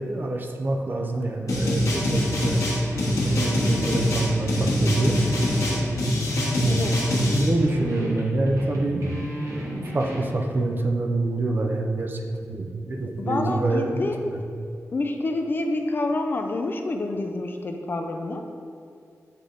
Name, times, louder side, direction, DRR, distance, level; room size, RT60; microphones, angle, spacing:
voice 1, 0.0-2.6 3.2-5.1 6.5-12.2 12.5-14.4, right 2 dB, 35° right, 2 dB, 0.5 m, -26 dB
sound 1, 1.5-7.5, left 1 dB, 75° left, 1.3 m, -24 dB
sound 2, 1.5-10.4, equal, 70° right, 1.1 m, -34 dB
voice 2, 6.6-7.0 7.7-7.8 13.2-14.2 14.9-18.4, left 2 dB, 40° left, 4 dB, 0.4 m, -28 dB
8.1 x 3.4 x 3.8 m, 2.3 s
wide cardioid pair, 165°, 6 cm